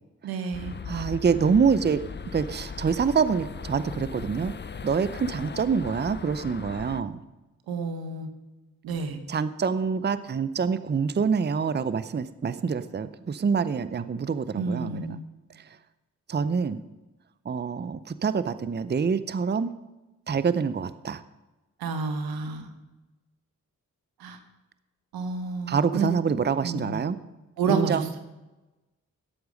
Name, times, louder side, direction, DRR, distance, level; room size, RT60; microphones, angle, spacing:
voice 1, 0.2-0.7 7.7-8.3 8.8-9.2 14.5-15.2 21.8-22.7 24.2-24.4 25.1-26.1 26.6-27.0 27.6-28.2, right 4 dB, 90° right, 7 dB, 1.3 m, -30 dB
sound 1, 0.5-7.0, left 5 dB, 30° left, 0.7 m, -38 dB
voice 2, 0.9-2.0 2.3-4.5 4.8-7.2 9.3-15.2 16.3-16.8 17.5-19.7 20.3-21.2 25.7-27.2 27.7-28.1, right 6 dB, 30° right, 14 dB, 0.6 m, -26 dB
12.5 x 8.0 x 5.3 m, 1.1 s
supercardioid pair, 40°, 35 cm